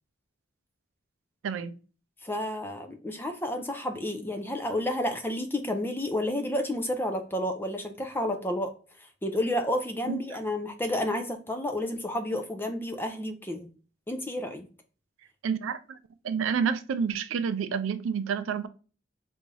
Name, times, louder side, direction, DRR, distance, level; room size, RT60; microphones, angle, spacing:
voice 1, 1.4-1.7 10.1-10.4 15.4-16.0 16.2-18.7, right 6 dB, 75° right, 0.4 m, -29 dB
voice 2, 2.2-8.7 9.2-13.7 14.1-14.7, left 1 dB, 10° left, 0.4 m, -30 dB
3.5 x 2.6 x 3.2 m
head